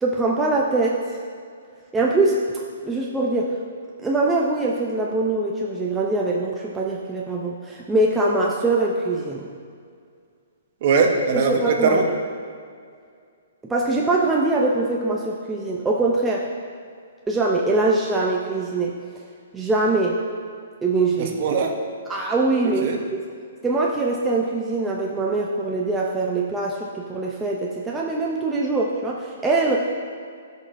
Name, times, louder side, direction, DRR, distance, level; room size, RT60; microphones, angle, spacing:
voice 1, 0.0-1.1 1.9-2.4 2.8-3.5 4.0-9.5 11.3-12.0 13.6-16.5 17.3-18.9 19.5-20.2 20.8-21.4 22.1-22.9 23.6-29.8, right 2 dB, 5° right, -3 dB, 0.4 m, -23 dB
voice 2, 10.8-12.1 21.2-21.7 22.8-23.0, right 5 dB, 40° right, 3 dB, 0.8 m, -20 dB
13.5 x 5.3 x 2.5 m, 2.2 s
hypercardioid pair, 165°, 0 cm